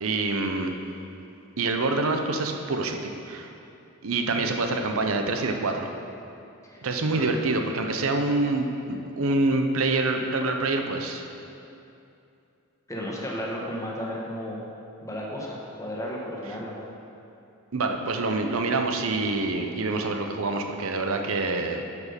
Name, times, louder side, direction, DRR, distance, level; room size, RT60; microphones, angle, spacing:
voice 1, 0.0-0.7 1.6-3.5 4.0-5.9 6.8-11.2 17.7-21.8, right 3 dB, 70° right, 5 dB, 0.8 m, -26 dB
voice 2, 6.6-7.2 12.9-14.6 15.0-16.8, equal, 15° left, -3 dB, 1.4 m, -34 dB
8.1 x 7.3 x 5.2 m, 2.7 s
head